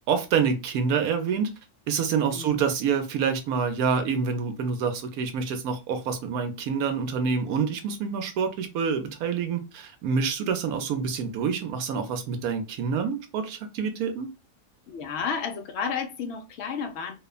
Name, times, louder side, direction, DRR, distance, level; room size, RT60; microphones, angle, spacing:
voice 1, 0.1-1.5 1.9-14.3, right 6 dB, 75° right, 1.0 m, -27 dB
voice 2, 2.3-2.6 10.4-10.5 14.9-17.2, left 6 dB, 65° left, 0.6 m, -32 dB
2.9 x 2.1 x 2.3 m
omnidirectional pair, 1.7 m